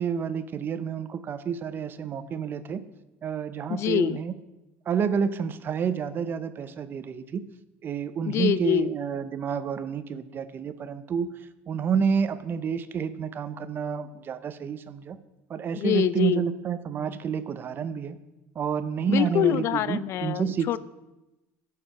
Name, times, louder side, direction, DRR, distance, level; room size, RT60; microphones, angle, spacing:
voice 1, 0.0-2.8 3.2-4.3 4.9-7.4 7.8-11.3 11.7-15.2 15.5-18.2 18.5-20.7, right 7 dB, 35° right, 12 dB, 0.6 m, -29 dB
voice 2, 3.7-4.2 8.3-8.9 15.8-16.5 19.1-20.8, left 12 dB, 50° left, 17 dB, 0.4 m, -25 dB
11.5 x 4.9 x 5.7 m, 1.0 s
supercardioid pair, 110°, 6 cm